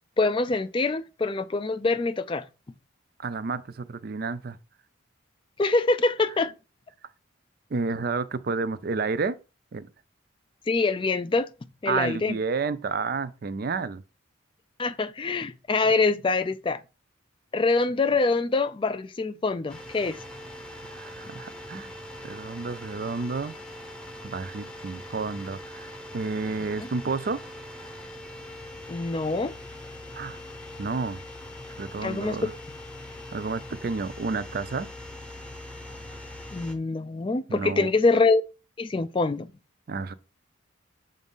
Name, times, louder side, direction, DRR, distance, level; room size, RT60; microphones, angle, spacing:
voice 1, 0.2-2.5 5.6-6.5 10.7-11.5 11.8-12.3 14.8-16.8 17.5-20.2 28.9-29.5 32.0-32.5 36.5-38.4 38.8-39.5, left 3 dB, 25° left, 0.3 m, -25 dB
voice 2, 3.2-4.6 7.7-9.4 9.7-9.9 11.9-14.0 20.8-21.9 22.2-23.6 24.2-27.4 30.1-30.4 30.8-31.2 31.7-32.5 33.3-34.9 37.5-37.9 39.9-40.1, right 4 dB, 45° right, 0.4 m, -30 dB
sound 1, 19.7-36.7, left 1 dB, 5° left, 0.8 m, -42 dB
7.1 x 2.5 x 5.3 m
head